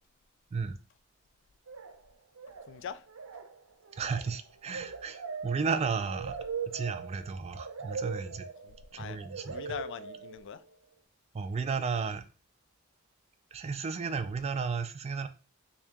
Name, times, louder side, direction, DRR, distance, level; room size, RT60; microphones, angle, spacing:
sound 1, 1.7-2.1 2.4-2.8 3.1-10.7, right 5 dB, 80° right, 0.6 m, -41 dB
voice 1, 2.6-3.0 8.6-9.2 9.5-10.6, left 7 dB, 60° left, 0.3 m, -42 dB
voice 2, 4.0-6.4 6.7-8.5 8.9-9.8 11.3-12.2 13.5-15.3, right 5 dB, 30° right, 0.3 m, -33 dB
3.6 x 2.7 x 3.4 m
head